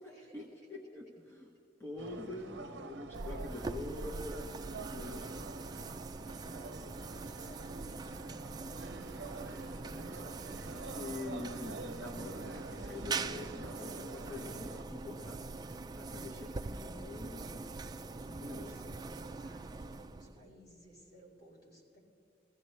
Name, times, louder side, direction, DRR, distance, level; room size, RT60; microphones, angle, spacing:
voice 1, 0.0-1.5 1.8-4.5 4.9-6.0 6.4-6.7 11.0-15.4 15.9-17.7 18.3-18.7, left 2 dB, 15° left, -1 dB, 1.1 m, -45 dB
sound 1, 2.0-14.8, right 3 dB, 65° right, 0.7 m, -48 dB
sound 2, 3.1-20.5, right 3 dB, 20° right, 0.3 m, -43 dB
voice 2, 6.3-11.3 18.1-22.0, equal, 55° left, -4 dB, 4.5 m, -58 dB
22.0 x 15.0 x 3.2 m, 2.4 s
head